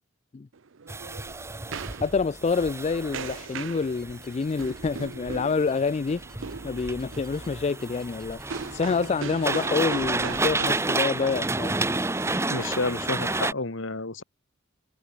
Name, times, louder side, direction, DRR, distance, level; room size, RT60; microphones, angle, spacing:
sound 1, 0.5-13.0, right 5 dB, 65° right, 0.7 m, -40 dB
sound 2, 0.9-13.5, right 2 dB, 15° right, 0.9 m, -31 dB
voice 1, 2.0-6.2 6.6-11.7, left 4 dB, 30° left, 0.3 m, -27 dB
sound 3, 3.3-3.7 4.0-5.2 5.4-10.1, left 1 dB, 5° left, 6.8 m, -59 dB
voice 2, 12.5-14.2, left 3 dB, 65° left, 1.8 m, -30 dB
head